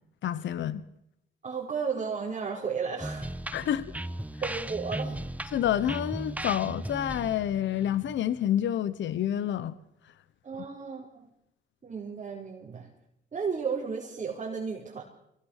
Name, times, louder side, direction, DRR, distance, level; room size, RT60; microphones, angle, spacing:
voice 1, 0.2-0.8 3.5-3.9 5.5-9.7, left 10 dB, 70° left, 16 dB, 1.1 m, -28 dB
voice 2, 1.4-3.3 4.4-5.2 10.4-11.3 11.8-12.9 13.3-15.0, right 5 dB, 35° right, -2 dB, 5.0 m, -33 dB
sound 1, 3.0-8.6, right 1 dB, 5° right, 1.0 m, -37 dB
24.0 x 18.0 x 6.7 m, 0.81 s
cardioid pair, 90°, 20 cm